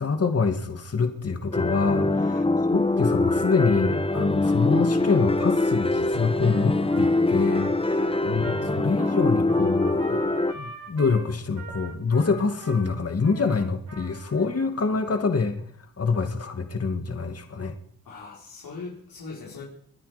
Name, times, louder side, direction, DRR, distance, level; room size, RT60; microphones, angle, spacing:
voice 1, 0.0-2.4 2.7-10.2 10.5-15.6 16.0-17.7, left 4 dB, 40° left, 7 dB, 2.2 m, -26 dB
sound 1, 1.5-10.5, left 2 dB, 15° left, 1.1 m, -23 dB
Trumpet, 6.4-14.7, right 3 dB, 70° right, 7.0 m, -43 dB
voice 2, 7.8-8.2 18.0-19.6, left 4 dB, 80° left, -5 dB, 5.0 m, -41 dB
23.0 x 10.0 x 5.1 m, 0.65 s
cardioid pair, 60°, 35 cm